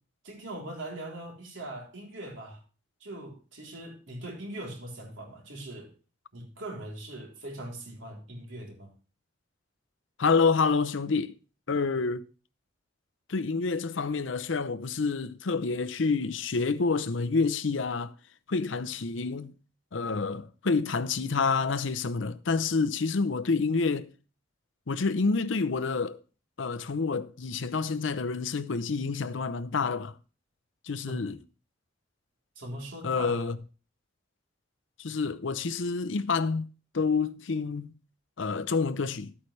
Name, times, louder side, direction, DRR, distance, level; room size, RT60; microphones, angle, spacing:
voice 1, 0.2-2.6 3.0-5.9 6.3-8.9 31.1-31.2 32.6-33.5, right 1 dB, 75° right, 3.5 m, -41 dB
voice 2, 10.2-11.3 11.7-12.3 13.3-18.1 18.5-19.5 19.9-24.1 24.9-26.2 26.6-30.1 30.9-31.4 33.0-33.6 35.0-36.7 36.9-37.9 38.4-39.3, left 4 dB, 75° left, 0.7 m, -28 dB
13.0 x 8.8 x 3.3 m
head